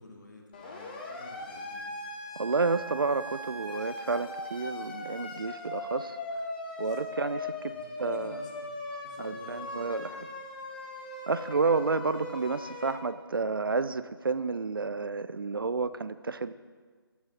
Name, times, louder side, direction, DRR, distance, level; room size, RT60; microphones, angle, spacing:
voice 1, 0.0-2.0 6.8-7.0 7.7-10.2, left 2 dB, 45° left, 0 dB, 1.8 m, -50 dB
Siren, 0.5-12.9, left 2 dB, 20° left, 0.8 m, -39 dB
voice 2, 2.4-6.2 6.8-7.7 8.0-8.4 9.2-10.0 11.3-16.5, right 4 dB, 60° right, 14 dB, 0.4 m, -30 dB
14.5 x 8.1 x 3.0 m, 1.5 s
figure-of-eight pair, 155°, 13 cm